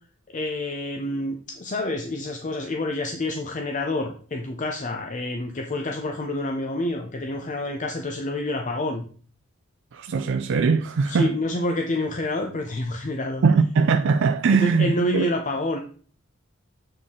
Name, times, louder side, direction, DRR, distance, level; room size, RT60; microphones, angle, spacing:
voice 1, 0.3-9.0 11.1-13.4 14.5-15.8, left 1 dB, 40° left, 0.6 m, -28 dB
voice 2, 9.9-11.3 13.4-15.3, right 5 dB, 65° right, 0.4 m, -21 dB
7.6 x 4.2 x 3.7 m
head